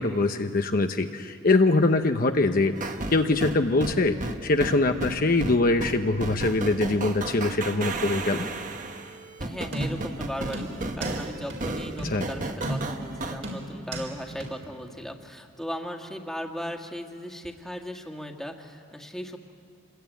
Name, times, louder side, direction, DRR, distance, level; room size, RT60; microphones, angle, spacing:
voice 1, 0.0-2.7 3.1-8.5 12.0-12.3, left 2 dB, 45° left, 6 dB, 0.8 m, -23 dB
sound 1, 2.8-13.4, right 2 dB, 40° right, 1.4 m, -33 dB
voice 2, 9.4-19.4, equal, ahead, 3 dB, 1.8 m, -37 dB
sound 2, 9.7-10.2 10.5-11.2 11.5-11.6 12.0-12.2 12.6-13.1 13.4-14.1 14.4-14.5, right 1 dB, 65° right, 4.2 m, -33 dB
26.5 x 21.5 x 9.2 m, 2.3 s
head